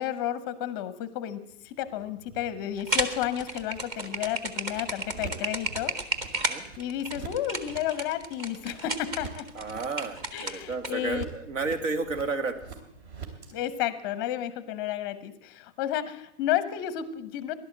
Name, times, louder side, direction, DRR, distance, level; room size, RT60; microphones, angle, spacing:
voice 1, 0.0-5.9 6.8-9.5 10.3-11.3 13.5-17.5, left 11 dB, 20° left, 14 dB, 0.6 m, -32 dB
sound 1, 1.5-13.5, right 5 dB, 55° right, 3.1 m, -46 dB
sound 2, 2.8-10.9, right 2 dB, 15° right, 0.7 m, -32 dB
voice 2, 9.5-12.6, right 3 dB, 90° right, 8 dB, 2.3 m, -32 dB
16.0 x 11.5 x 7.8 m, 0.80 s
hypercardioid pair, 165°, 38 cm